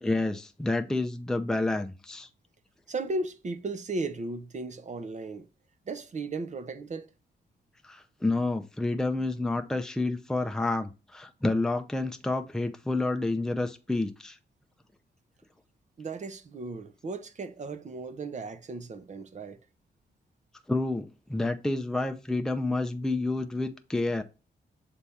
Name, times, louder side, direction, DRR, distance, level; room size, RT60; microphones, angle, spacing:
voice 1, 0.0-2.3 7.8-14.4 20.7-24.2, left 2 dB, 5° left, 0.6 m, -29 dB
voice 2, 2.9-5.5 5.9-7.1 16.0-19.6, right 3 dB, 45° right, 0.8 m, -36 dB
7.2 x 3.5 x 4.2 m
cardioid pair, 105°, 18 cm